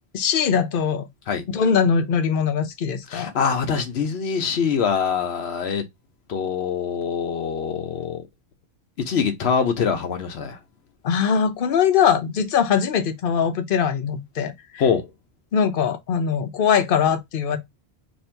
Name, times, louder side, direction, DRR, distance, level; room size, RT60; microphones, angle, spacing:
voice 1, 0.1-1.1 1.5-3.3 11.0-14.8 15.5-17.6, left 7 dB, 60° left, 0.8 m, -21 dB
voice 2, 3.1-5.8 6.3-8.2 9.0-10.6 14.8-15.1, left 6 dB, 85° left, 1.1 m, -24 dB
2.9 x 2.7 x 4.3 m
omnidirectional pair, 1.1 m